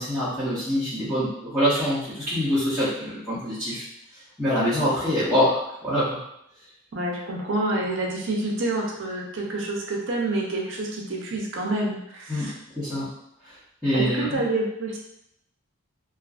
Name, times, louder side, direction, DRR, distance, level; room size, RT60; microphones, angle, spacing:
voice 1, 0.0-3.8 4.4-6.2 12.3-13.1 13.4-13.5 13.8-14.4, equal, ahead, -14 dB, 0.6 m, -25 dB
voice 2, 6.9-12.5 13.9-15.0, right 2 dB, 55° right, -1 dB, 0.5 m, -28 dB
2.4 x 2.4 x 2.4 m, 0.78 s
head